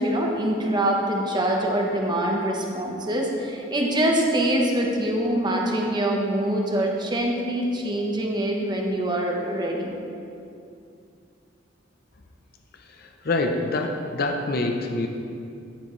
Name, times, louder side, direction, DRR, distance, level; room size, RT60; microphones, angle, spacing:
voice 1, 0.0-10.0, right 1 dB, 25° right, 0 dB, 1.0 m, -24 dB
voice 2, 13.0-15.1, left 2 dB, 55° left, 3 dB, 0.7 m, -26 dB
9.8 x 8.9 x 3.2 m, 2.6 s
head